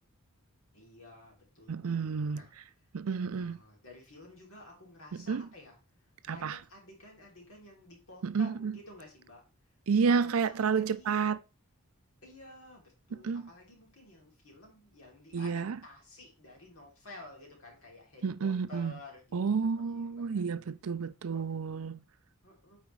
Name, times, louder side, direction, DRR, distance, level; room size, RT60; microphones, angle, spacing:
voice 1, 0.7-2.5 3.2-5.8 6.2-9.4 10.0-11.1 12.2-20.4 21.3-21.4 22.4-22.8, left 2 dB, 75° left, 3.0 m, -52 dB
voice 2, 1.7-2.4 2.9-3.6 5.1-5.5 6.3-6.6 8.2-8.8 9.9-11.4 13.2-13.4 15.3-15.8 18.2-18.9 19.3-22.0, right 5 dB, 75° right, 0.5 m, -30 dB
8.8 x 4.4 x 3.2 m
head